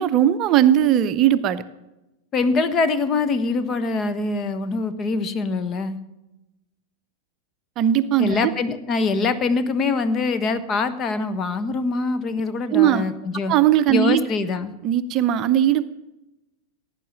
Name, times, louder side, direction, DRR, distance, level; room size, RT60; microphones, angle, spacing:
voice 1, 0.0-1.6 7.8-8.5 12.7-13.0 13.5-14.2 14.8-15.8, right 11 dB, 35° right, 12 dB, 0.7 m, -18 dB
voice 2, 2.3-6.0 8.2-13.5 13.9-14.7, left 4 dB, 30° left, 11 dB, 1.3 m, -24 dB
17.0 x 9.8 x 7.4 m, 0.96 s
figure-of-eight pair, 90°, 0 cm